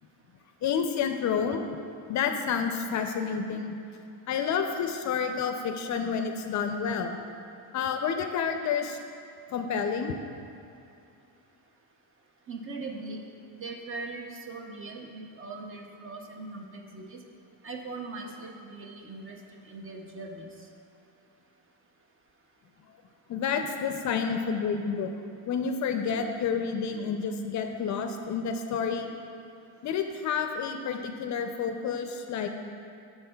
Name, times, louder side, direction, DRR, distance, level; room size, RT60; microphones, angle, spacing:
voice 1, 0.6-1.6 2.0-3.8 4.3-7.2 7.7-9.0 9.5-10.2 23.3-25.1 25.5-29.1 29.8-32.5, left 6 dB, 50° left, 6 dB, 0.4 m, -29 dB
voice 2, 12.5-13.2 13.5-17.2 17.6-20.5, right 3 dB, 35° right, 2 dB, 0.6 m, -40 dB
12.0 x 4.4 x 2.2 m, 2.6 s
cardioid pair, 125°, 38 cm